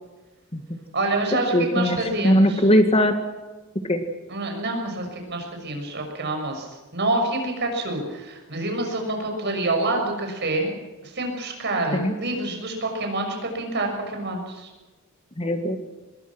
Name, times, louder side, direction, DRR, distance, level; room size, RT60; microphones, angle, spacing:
voice 1, 0.9-2.7 4.3-10.7 11.0-14.7, right 2 dB, 55° right, 3 dB, 6.5 m, -27 dB
voice 2, 1.5-2.0 2.2-3.2 3.9-4.0 11.9-12.1 15.4-15.8, equal, 30° left, 6 dB, 1.8 m, -19 dB
25.0 x 21.0 x 6.1 m, 1.2 s
head